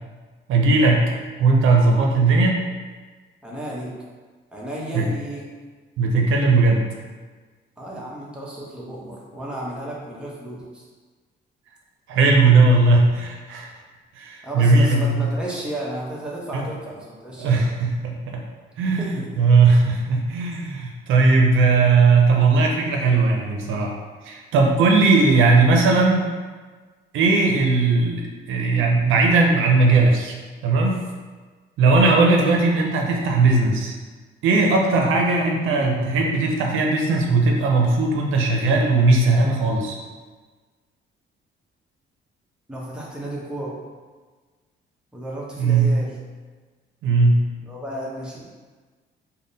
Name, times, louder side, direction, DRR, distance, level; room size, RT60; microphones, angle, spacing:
voice 1, 0.5-1.1 1.4-2.6 4.9-5.1 6.0-6.8 12.1-13.7 14.2-15.3 16.5-16.6 17.4-18.4 18.8-19.1 19.4-23.9 24.2-26.3 27.1-28.2 28.5-30.3 30.6-31.0 31.8-33.9 34.4-40.0 45.6-46.0 47.0-47.4, right 3 dB, 85° right, 1 dB, 0.6 m, -18 dB
voice 2, 3.4-3.9 4.5-5.4 7.8-10.8 14.4-17.6 18.8-19.3 35.6-35.8 42.7-43.8 45.1-46.1 47.6-48.5, right 1 dB, 5° right, -5 dB, 0.9 m, -33 dB
3.6 x 2.1 x 4.0 m, 1.4 s
cardioid pair, 90°, 20 cm